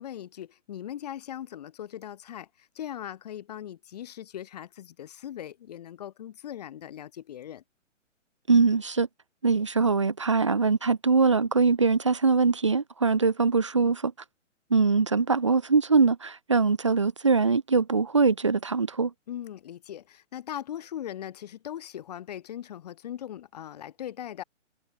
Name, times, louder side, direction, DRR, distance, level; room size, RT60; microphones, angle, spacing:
voice 1, 0.0-2.5 2.7-7.6 19.3-24.4, left 11 dB, 30° left, 1.3 m, -39 dB
voice 2, 8.5-9.1 9.4-14.1 14.7-19.1, right 4 dB, 25° right, 0.5 m, -22 dB
hypercardioid pair, 160°, 38 cm